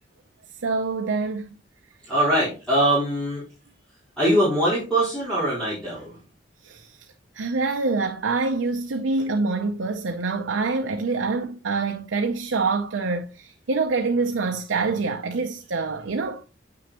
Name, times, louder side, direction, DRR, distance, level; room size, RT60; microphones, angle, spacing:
voice 1, 0.6-1.5 6.6-6.9 7.4-16.4, right 3 dB, 85° right, 0.6 m, -25 dB
voice 2, 2.0-3.4 4.2-6.2, right 1 dB, 5° left, 4.2 m, -22 dB
8.6 x 6.2 x 2.9 m
head